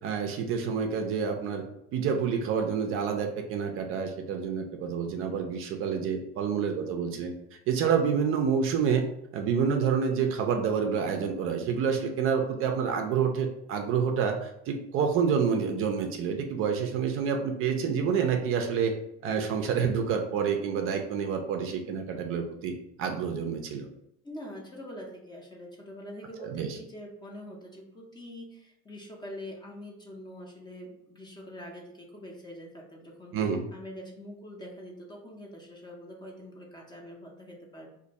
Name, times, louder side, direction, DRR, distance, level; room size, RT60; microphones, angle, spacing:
voice 1, 0.0-1.6 1.9-7.3 7.7-9.0 9.3-18.9 19.2-23.9 26.4-26.8 33.3-33.7, right 6 dB, 45° right, 4 dB, 0.4 m, -28 dB
voice 2, 24.2-37.9, equal, 15° left, 0 dB, 0.5 m, -44 dB
2.6 x 2.5 x 4.0 m, 0.81 s
cardioid pair, 135°, 32 cm